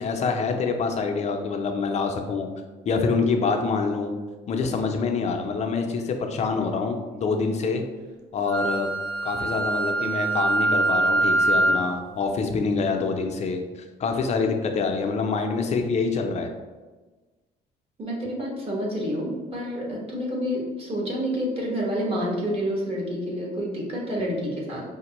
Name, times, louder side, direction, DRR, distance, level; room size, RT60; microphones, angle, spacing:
voice 1, 0.0-2.5 2.9-4.1 4.5-7.8 8.3-8.9 9.2-16.5, left 4 dB, 40° left, 4 dB, 0.5 m, -26 dB
Wind instrument woodwind instrument, 8.5-11.9, right 2 dB, 80° right, 0.6 m, -23 dB
voice 2, 18.0-24.8, equal, 35° right, -3 dB, 1.3 m, -28 dB
5.1 x 2.1 x 2.9 m, 1.3 s
cardioid pair, 110°, 17 cm